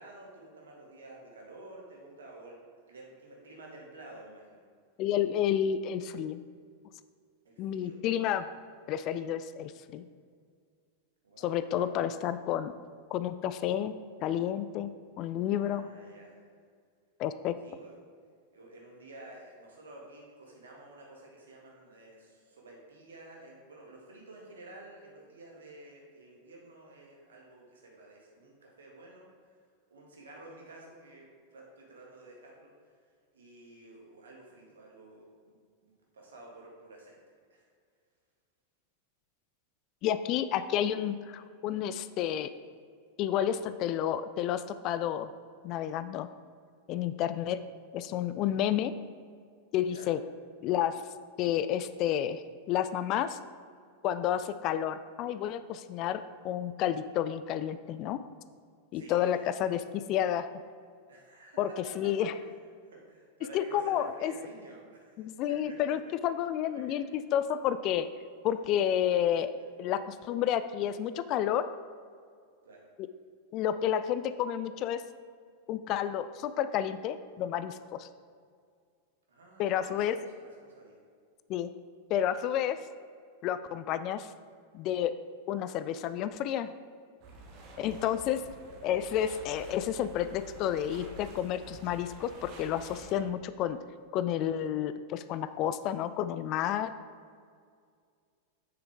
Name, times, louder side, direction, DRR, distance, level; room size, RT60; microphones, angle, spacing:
voice 1, 0.0-2.6 2.8-4.6 7.4-8.0 8.3-8.5 11.2-12.0 15.6-16.5 17.6-18.0 18.5-29.6 29.9-33.0 33.3-35.6 35.8-37.2 37.5-37.7 47.5-47.6 48.4-48.6 49.9-50.1 58.9-59.5 59.9-60.1 61.1-62.5 62.9-66.3 66.6-67.0 72.6-72.9 79.3-81.0 83.6-83.8 87.8-88.7, right 2 dB, 65° right, -1 dB, 1.7 m, -51 dB
voice 2, 5.0-6.4 7.6-8.5 8.9-10.0 11.4-12.7 13.1-13.9 14.2-15.9 17.2-17.5 40.0-42.5 43.2-45.3 45.6-46.3 46.9-47.6 47.9-48.9 49.7-50.2 50.6-51.0 51.4-53.4 54.0-58.2 58.9-60.5 61.6-61.7 62.0-62.3 63.5-64.3 65.2-68.1 68.4-69.5 69.8-71.7 73.5-75.0 75.7-78.1 79.6-80.2 81.5-81.7 82.1-82.8 83.4-84.3 84.7-85.1 85.5-86.7 87.8-88.4 88.8-93.8 94.1-96.9, left 10 dB, 40° left, 12 dB, 0.3 m, -30 dB
sound 1, 87.2-93.2, right 1 dB, 45° right, 1.4 m, -49 dB
7.7 x 6.7 x 3.4 m, 2.1 s
figure-of-eight pair, 90°, 0 cm